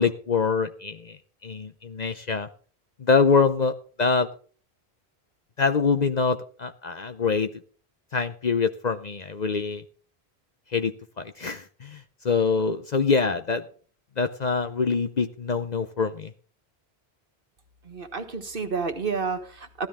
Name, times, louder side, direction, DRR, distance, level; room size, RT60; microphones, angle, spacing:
voice 1, 0.0-2.5 3.0-4.3 5.6-7.5 8.1-9.8 10.7-13.6 14.2-16.3, left 5 dB, 45° left, 8 dB, 0.7 m, -25 dB
voice 2, 17.8-19.9, right 5 dB, 55° right, 6 dB, 1.6 m, -30 dB
14.5 x 12.5 x 3.6 m, 0.41 s
omnidirectional pair, 1.1 m